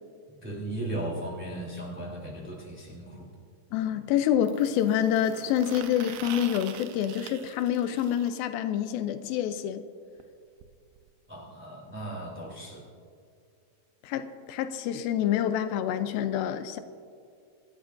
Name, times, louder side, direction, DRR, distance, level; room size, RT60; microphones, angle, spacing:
voice 1, 0.3-3.3 11.3-12.8, right 1 dB, 5° right, -5 dB, 2.7 m, -37 dB
sound 1, 2.4-2.5 4.4-8.3 10.2-10.3 10.6-10.7 11.0-11.1 12.0-12.1, right 10 dB, 85° right, 2.5 m, -44 dB
voice 2, 3.7-9.8 14.0-16.8, left 10 dB, 85° left, 10 dB, 2.4 m, -27 dB
25.0 x 13.0 x 2.6 m, 2.3 s
omnidirectional pair, 4.2 m